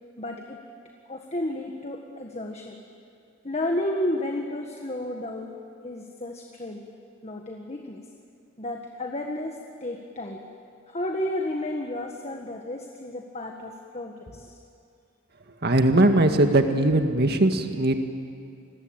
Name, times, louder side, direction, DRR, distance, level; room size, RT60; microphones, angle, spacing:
voice 1, 0.2-0.6 1.1-2.8 3.4-5.6 5.8-6.8 7.2-8.0 8.6-10.5 10.9-14.6, left 1 dB, 35° left, 2 dB, 1.7 m, -32 dB
voice 2, 15.6-18.0, right 1 dB, 55° right, 6 dB, 1.9 m, -20 dB
29.0 x 21.5 x 8.9 m, 2.5 s
head